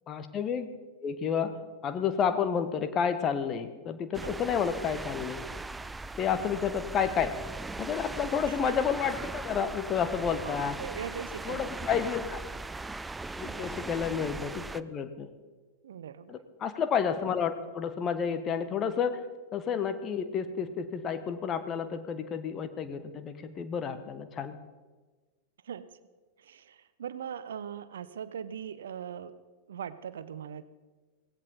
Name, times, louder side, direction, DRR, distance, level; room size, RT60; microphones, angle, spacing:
voice 1, 0.1-0.7 1.0-1.5 1.8-5.4 6.2-7.3 7.8-10.8 11.4-12.4 13.4-15.3 16.3-19.2 19.5-24.5, left 7 dB, 30° left, 10 dB, 1.3 m, -30 dB
sound 1, 4.1-14.8, right 3 dB, 10° right, 0.4 m, -39 dB
voice 2, 10.4-11.7 13.4-13.7 15.8-16.4 25.6-25.9 26.4-29.3 29.7-30.6, right 8 dB, 65° right, 15 dB, 0.7 m, -40 dB
18.0 x 16.0 x 4.2 m, 1.3 s
figure-of-eight pair, 90°, 0 cm